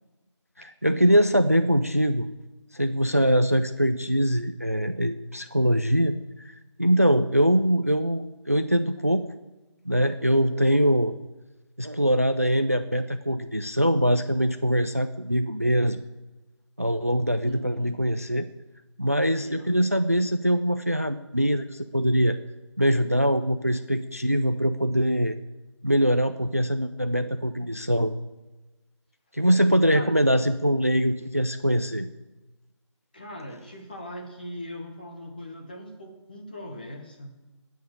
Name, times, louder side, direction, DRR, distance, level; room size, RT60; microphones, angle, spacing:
voice 1, 0.8-2.3 2.7-6.1 6.4-9.3 9.9-11.1 11.8-16.0 16.8-18.5 19.0-22.4 22.8-25.4 25.8-28.1 29.3-32.1, equal, 30° right, 10 dB, 0.5 m, -23 dB
voice 2, 17.4-18.1 19.3-20.0 29.9-30.2 33.1-37.4, equal, 20° left, 2 dB, 1.5 m, -40 dB
13.5 x 9.3 x 9.3 m, 1.1 s
figure-of-eight pair, 175°, 16 cm